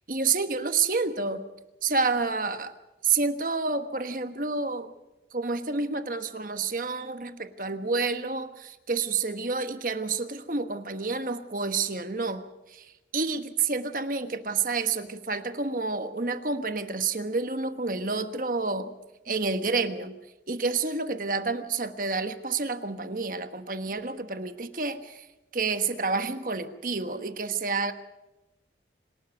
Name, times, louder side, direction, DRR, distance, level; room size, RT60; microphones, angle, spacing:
voice 1, 0.1-1.4 1.8-2.7 3.0-4.9 5.3-12.4 12.7-18.9 19.3-20.1 20.5-25.3 25.5-27.9, right 4 dB, 50° right, 9 dB, 1.3 m, -29 dB
27.0 x 12.5 x 8.0 m, 1.0 s
head